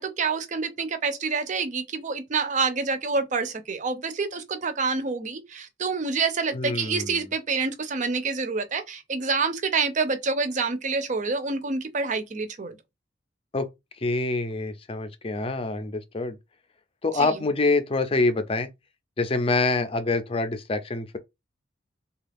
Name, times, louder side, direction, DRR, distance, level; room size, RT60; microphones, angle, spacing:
voice 1, 0.0-12.8 17.1-17.4, right 4 dB, 40° right, 0.6 m, -27 dB
voice 2, 6.5-7.2 13.5-13.7 14.0-16.4 17.0-18.7 19.2-21.2, left 3 dB, 30° left, 0.5 m, -26 dB
3.3 x 2.4 x 3.4 m
head